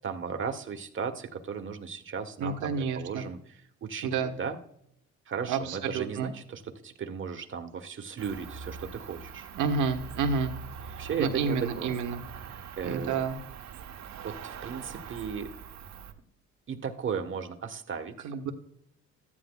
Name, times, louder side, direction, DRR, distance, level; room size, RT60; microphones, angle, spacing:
voice 1, 0.0-4.6 5.3-9.5 10.9-12.0 12.5-13.2 14.2-15.5 16.7-18.3, right 6 dB, 40° right, 6 dB, 1.2 m, -36 dB
voice 2, 2.4-3.2 4.0-4.3 5.5-6.3 9.5-10.5 10.9-12.2 12.8-13.4 18.2-18.5, right 5 dB, 80° right, 5 dB, 1.3 m, -30 dB
Cricket, 8.2-16.1, right 6 dB, 65° right, 1.0 m, -43 dB
14.0 x 10.0 x 2.3 m, 0.70 s
cardioid pair, 90°, 30 cm